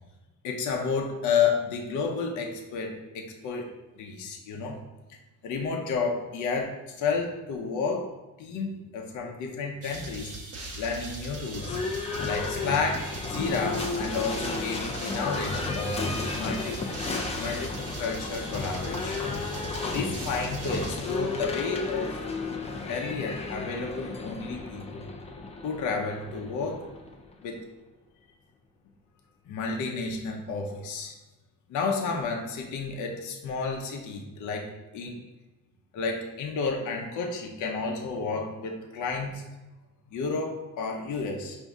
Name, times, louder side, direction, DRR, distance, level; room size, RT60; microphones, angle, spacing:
voice 1, 0.4-3.7 4.0-4.8 5.1-5.2 5.4-8.1 8.4-10.3 10.8-11.8 12.2-16.8 17.4-19.2 19.8-22.2 22.9-25.1 25.6-26.9 27.4-27.6 29.5-31.1 31.7-34.7 34.9-35.2 35.9-39.4 40.1-41.6, left 4 dB, 60° left, 1 dB, 0.7 m, -31 dB
sound 1, 9.8-21.7, right 2 dB, 45° right, 0.9 m, -40 dB
Livestock farm animals working animals / Bell, 11.5-27.4, left 3 dB, 20° left, 0.3 m, -33 dB
5.1 x 2.7 x 3.5 m, 1.1 s
cardioid pair, 155°, 34 cm